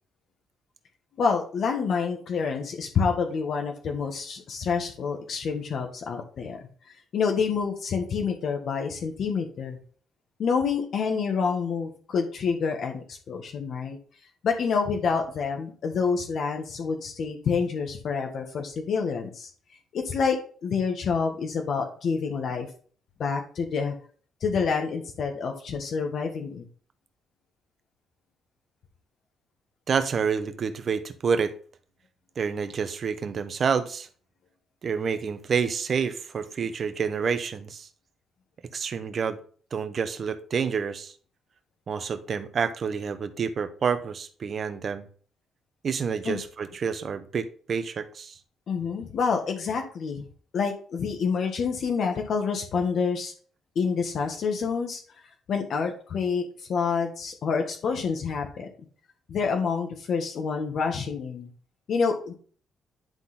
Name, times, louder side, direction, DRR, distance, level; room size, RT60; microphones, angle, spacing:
voice 1, 1.2-6.6 6.9-9.8 10.4-14.0 14.4-19.5 19.9-22.7 23.2-23.9 24.4-26.6 46.2-46.4 48.7-50.2 50.5-53.3 53.7-55.0 55.5-58.7 59.3-61.5 61.9-62.3, left 5 dB, 60° left, 3 dB, 1.4 m, -28 dB
voice 2, 29.9-31.6 32.4-34.1 34.8-37.9 38.7-39.4 39.7-41.1 41.9-45.1 45.8-48.3, right 6 dB, 50° right, 11 dB, 1.0 m, -28 dB
10.5 x 3.9 x 4.1 m, 0.43 s
cardioid pair, 90°, 0 cm